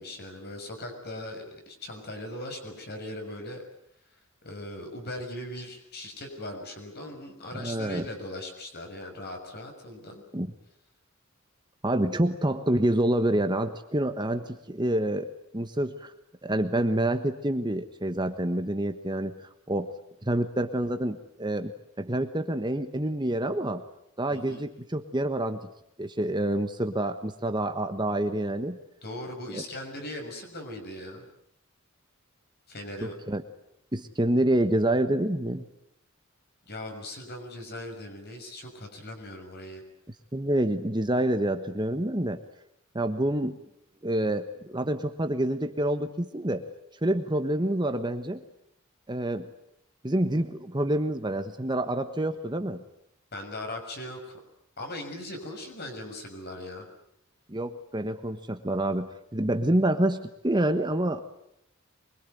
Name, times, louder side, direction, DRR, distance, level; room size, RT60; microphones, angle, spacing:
voice 1, 0.0-3.6 4.4-10.2 24.3-24.7 29.0-31.2 32.7-33.1 36.7-39.8 53.3-54.3 54.8-56.8, left 1 dB, 50° left, 4 dB, 6.5 m, -39 dB
voice 2, 7.5-8.0 10.3-10.5 11.8-15.3 15.5-16.1 16.4-19.4 19.7-19.9 20.2-21.7 22.0-23.8 24.2-25.6 26.0-28.8 29.5-29.6 33.0-33.4 33.9-35.7 40.3-42.4 42.9-43.6 44.0-46.7 47.0-48.4 49.1-49.5 50.0-52.8 57.5-61.2, right 1 dB, 20° right, 7 dB, 1.3 m, -27 dB
24.5 x 22.5 x 9.3 m, 0.75 s
head